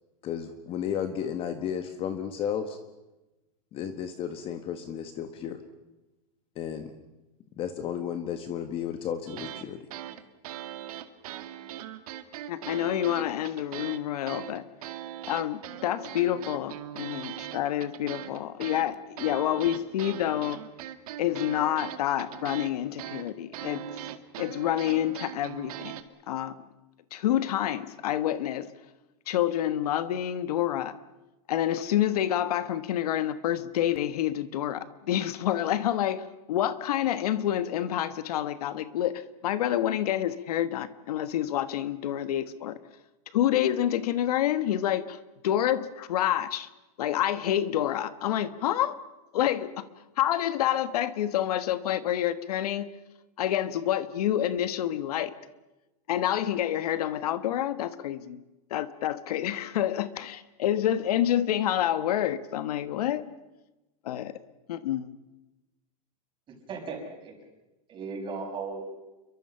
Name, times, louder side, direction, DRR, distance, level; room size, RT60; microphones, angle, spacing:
voice 1, 0.2-2.8 3.7-5.6 6.5-6.9 7.6-9.8, left 8 dB, 25° left, 7 dB, 1.6 m, -33 dB
sound 1, 9.3-9.7 9.9-14.0 14.3-26.0, right 12 dB, 65° right, 2.0 m, -40 dB
voice 2, 12.5-14.6 15.3-20.6 21.2-23.8 24.4-25.9 26.3-26.6 27.1-28.7 29.3-30.9 31.5-42.8 43.3-45.2 45.4-46.7 47.0-49.0 49.3-49.9 50.2-52.9 53.4-55.3 56.1-58.4 58.7-63.2 64.0-64.3 64.7-65.1, left 11 dB, 70° left, 12 dB, 1.4 m, -28 dB
voice 3, 66.5-67.3 67.9-69.0, right 4 dB, 25° right, 2 dB, 6.1 m, -37 dB
29.5 x 23.5 x 5.7 m, 1.0 s
supercardioid pair, 150°, 20 cm